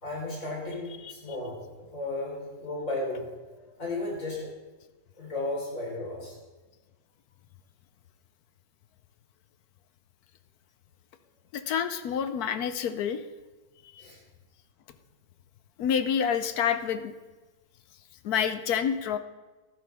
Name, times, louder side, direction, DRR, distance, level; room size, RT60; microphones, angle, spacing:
voice 1, 0.0-1.6 1.9-4.5 5.2-6.4 14.0-14.2, left 2 dB, 40° left, -4 dB, 4.5 m, -34 dB
voice 2, 0.8-1.4 11.5-13.3 13.9-14.0 15.8-17.1 18.2-19.2, left 8 dB, 65° left, 10 dB, 1.0 m, -28 dB
14.5 x 11.5 x 3.5 m, 1.2 s
omnidirectional pair, 2.1 m